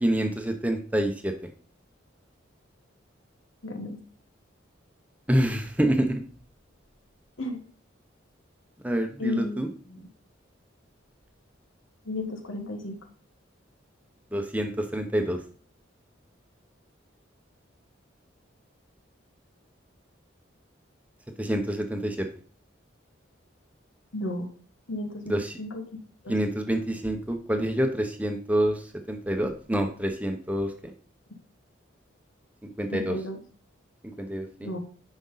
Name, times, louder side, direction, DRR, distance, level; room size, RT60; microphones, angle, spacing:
voice 1, 0.0-1.3 5.3-6.2 8.8-9.7 14.3-15.4 21.4-22.3 25.3-25.5 26.3-28.8 29.1-30.9 32.8-33.2 34.2-34.7, right 1 dB, 5° right, 5 dB, 0.8 m, -27 dB
voice 2, 3.6-4.0 7.4-7.6 9.2-9.6 9.9-10.1 12.1-13.0 24.1-24.5 24.9-26.4 32.9-33.4 34.6-34.8, left 2 dB, 85° left, 4 dB, 1.7 m, -34 dB
10.5 x 5.3 x 4.0 m, 0.44 s
head